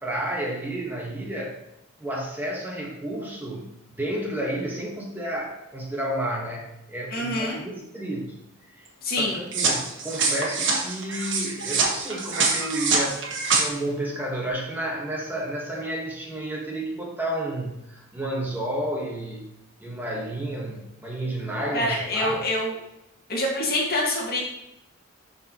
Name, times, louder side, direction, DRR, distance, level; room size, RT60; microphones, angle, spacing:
voice 1, 0.0-1.5 2.0-3.7 4.0-8.4 8.8-19.5 19.8-22.4, right 1 dB, 10° right, -2 dB, 1.3 m, -31 dB
voice 2, 7.1-7.6 9.0-9.4 21.7-22.8 23.3-24.4, left 1 dB, 45° left, -3 dB, 1.7 m, -25 dB
sound 1, 9.5-13.6, right 4 dB, 60° right, 1.3 m, -25 dB
10.5 x 4.3 x 3.0 m, 0.87 s
head